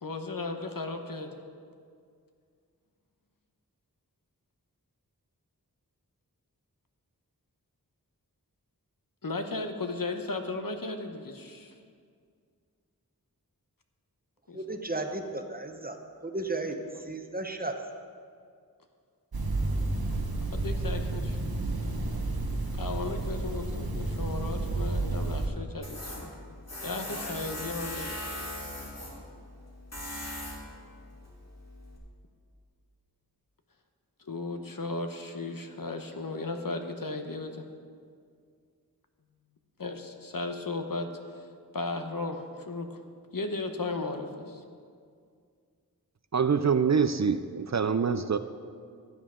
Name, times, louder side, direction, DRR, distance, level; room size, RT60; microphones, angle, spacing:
voice 1, 0.0-1.4 9.2-11.7 14.5-14.8 20.5-21.4 22.8-26.3 26.8-28.2 34.3-37.6 39.8-41.5 41.7-43.0 43.3-44.6, left 3 dB, 65° left, 5 dB, 1.0 m, -35 dB
voice 2, 14.5-16.8 17.0-17.8, right 2 dB, 25° right, 5 dB, 0.9 m, -34 dB
sound 1, 19.3-25.5, right 2 dB, 75° right, 1.2 m, -31 dB
Tools, 25.8-32.0, left 1 dB, 45° left, 2.6 m, -40 dB
voice 3, 46.3-48.4, right 6 dB, 50° right, 11 dB, 0.4 m, -25 dB
15.5 x 9.0 x 3.8 m, 2.2 s
wide cardioid pair, 50°, 37 cm